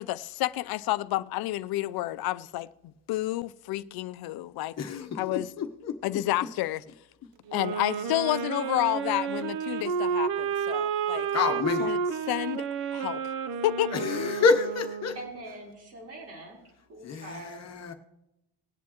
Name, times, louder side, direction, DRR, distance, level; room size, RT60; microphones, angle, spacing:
voice 1, 0.0-2.7 3.1-5.5 6.0-6.8 7.5-11.3 11.8-12.0 12.3-12.7 12.9-13.2 13.6-13.9, left 16 dB, 65° left, 0.5 m, -30 dB
voice 2, 4.8-6.0 11.3-11.9 13.9-15.1 17.0-17.9, left 5 dB, 40° left, 1.0 m, -28 dB
sound 1, 7.5-15.3, right 6 dB, 60° right, 0.7 m, -31 dB
voice 3, 15.1-16.6 16.9-17.6, right 1 dB, 35° right, 3.9 m, -43 dB
20.0 x 8.4 x 3.0 m
cardioid pair, 180°, 41 cm